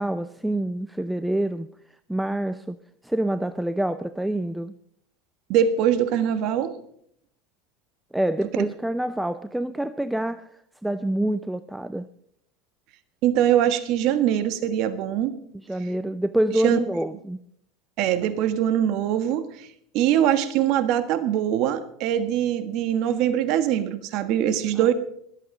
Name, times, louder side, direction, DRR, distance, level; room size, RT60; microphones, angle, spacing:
voice 1, 0.0-1.7 2.1-2.8 3.0-4.7 8.1-12.1 15.6-17.4 24.8-24.9, right 1 dB, 5° right, 0.5 m, -27 dB
voice 2, 5.5-6.7 8.6-8.7 13.2-15.4 16.6-16.8 18.0-19.7 19.9-24.9, right 10 dB, 55° right, 1.4 m, -22 dB
21.5 x 8.3 x 5.3 m
supercardioid pair, 115°, 0 cm